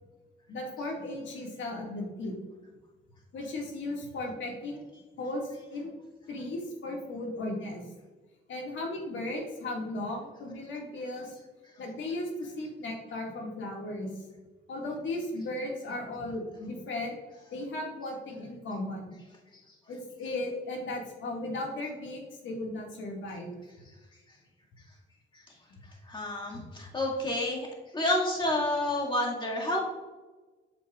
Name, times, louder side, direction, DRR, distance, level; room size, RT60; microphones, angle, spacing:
voice 1, 0.5-2.3 3.3-4.8 5.2-5.9 6.3-7.9 8.5-11.4 11.8-14.2 14.7-17.2 17.5-19.1 19.9-23.5, left 2 dB, 70° left, 0 dB, 2.1 m, -36 dB
voice 2, 26.1-27.7 27.9-29.8, left 1 dB, 25° left, -2 dB, 2.1 m, -29 dB
8.3 x 7.0 x 2.5 m, 1.3 s
cardioid pair, 90°, 20 cm